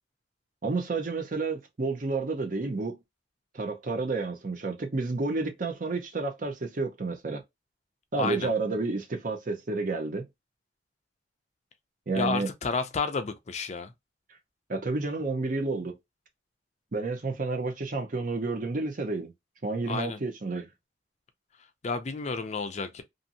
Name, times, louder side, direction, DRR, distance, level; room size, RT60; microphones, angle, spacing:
voice 1, 0.6-3.0 3.5-7.4 8.1-10.2 12.1-12.5 14.7-15.9 16.9-19.3 19.6-20.7, right 3 dB, 50° right, 0.7 m, -30 dB
voice 2, 8.2-8.5 12.1-13.9 19.9-20.2 21.8-23.0, left 4 dB, 40° left, 0.4 m, -31 dB
2.6 x 2.5 x 2.7 m
head